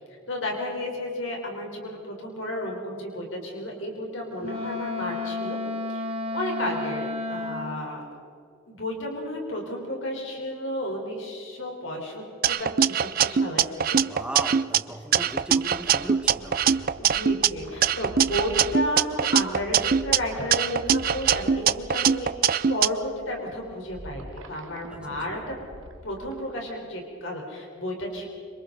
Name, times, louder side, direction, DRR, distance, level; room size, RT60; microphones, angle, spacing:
voice 1, 0.3-5.6 5.9-6.1 6.3-8.0 8.7-14.0 17.0-22.3 22.7-25.5 26.0-28.3, left 1 dB, 70° left, 0 dB, 4.1 m, -32 dB
Wind instrument woodwind instrument, 4.4-7.9, left 3 dB, 30° right, 1.5 m, -32 dB
sound 1, 12.4-14.8 15.1-17.5 17.8-20.2 20.5-22.9, right 8 dB, 45° right, 0.5 m, -22 dB
voice 2, 14.0-16.6 24.9-25.4, right 1 dB, 5° right, 4 dB, 1.4 m, -37 dB
sound 2, 15.2-26.6, right 1 dB, 80° right, 1.5 m, -45 dB
27.0 x 26.0 x 4.0 m, 2.6 s
head